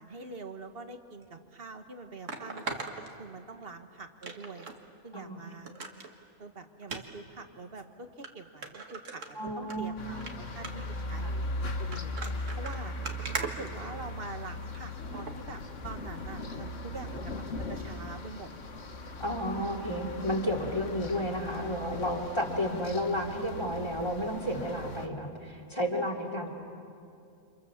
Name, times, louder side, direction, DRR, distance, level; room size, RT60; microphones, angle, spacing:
voice 1, 0.0-4.7 5.0-5.7 6.4-12.2 12.6-12.9 13.3-18.5 26.3-26.5, right 3 dB, 50° right, 7 dB, 1.7 m, -45 dB
sound 1, 1.2-1.3 2.3-3.7 4.2-4.8 5.2-5.3 5.7-6.1 6.8-7.0 7.8-7.9 8.2-8.3 8.6-9.8 10.1-10.3 10.6-10.9 11.7-14.4 15.1-15.4 15.9-16.0, right 4 dB, 80° right, 2.1 m, -39 dB
voice 2, 9.3-10.0 11.2-11.3 13.2-13.3 19.2-26.5, equal, 20° left, 1 dB, 3.2 m, -32 dB
sound 2, 10.0-25.1, left 2 dB, 75° left, 1.8 m, -38 dB
30.0 x 27.0 x 7.3 m, 2.5 s
omnidirectional pair, 1.3 m